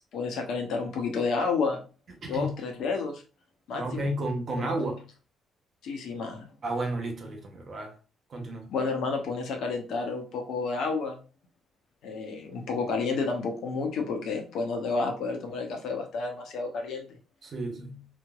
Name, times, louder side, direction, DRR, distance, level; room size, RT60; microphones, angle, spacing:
voice 1, 0.1-1.9 2.2-3.2 3.7-4.0 4.6-4.9 5.8-6.5 8.7-11.2 12.0-17.1, left 4 dB, 65° left, 1.0 m, -30 dB
voice 2, 3.7-5.0 6.6-8.0 8.3-8.7 17.4-18.1, right 1 dB, 50° right, 1.1 m, -32 dB
4.1 x 3.1 x 2.4 m
figure-of-eight pair, 40°, 0 cm